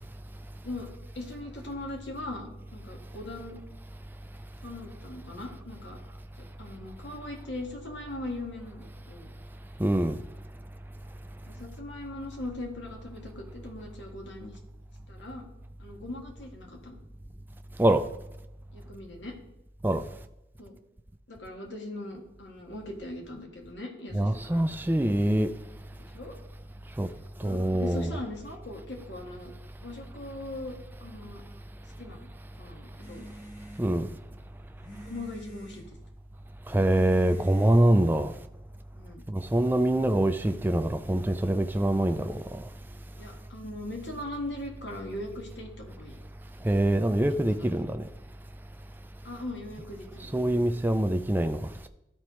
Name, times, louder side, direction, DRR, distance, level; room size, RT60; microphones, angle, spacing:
voice 1, 1.1-3.6 4.6-6.0 6.6-9.3 11.4-14.6 15.1-15.5 15.8-17.0 18.7-19.3 20.6-20.8 21.3-24.6 26.0-26.4 27.4-29.5 29.8-31.4 32.0-32.3 32.6-33.3 34.9-35.8 38.9-39.2 43.2-46.1 47.4-47.7 49.2-50.3, left 1 dB, 85° left, 1.7 m, -40 dB
voice 2, 9.8-10.2 17.8-18.0 19.8-20.0 24.1-25.5 27.0-27.1 27.4-28.1 33.8-34.1 36.7-38.3 39.3-42.6 46.6-48.0 50.3-51.9, right 1 dB, 10° right, 0.4 m, -24 dB
sound 1, 33.0-38.5, equal, 45° left, 1.8 m, -50 dB
13.0 x 4.4 x 3.1 m
head